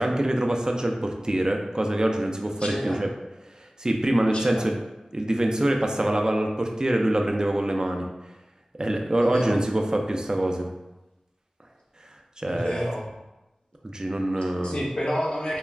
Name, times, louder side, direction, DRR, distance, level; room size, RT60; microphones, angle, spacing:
voice 1, 0.0-3.1 3.6-4.8 5.1-8.1 8.8-10.7 12.0-12.8 13.8-14.8, right 1 dB, 30° right, 2 dB, 0.4 m, -25 dB
voice 2, 2.6-3.1 4.3-4.7 9.1-9.6 12.4-13.2 14.6-15.6, equal, 45° left, -4 dB, 0.7 m, -29 dB
2.4 x 2.1 x 3.1 m, 1.0 s
wide cardioid pair, 45°, 2 cm